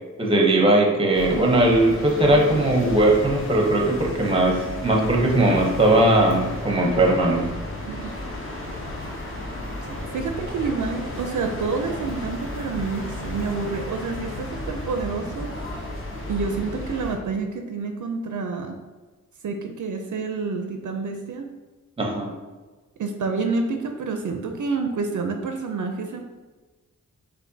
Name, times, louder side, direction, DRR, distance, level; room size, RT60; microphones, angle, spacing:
voice 1, 0.2-7.4 22.0-22.3, right 1 dB, 15° right, 0 dB, 0.6 m, -19 dB
sound 1, 1.1-17.2, left 1 dB, 40° left, 0.9 m, -33 dB
voice 2, 10.1-15.5 16.3-18.8 19.4-21.5 23.0-26.2, right 4 dB, 65° right, 4 dB, 0.5 m, -28 dB
6.4 x 2.6 x 2.6 m, 1.3 s
wide cardioid pair, 175°, 32 cm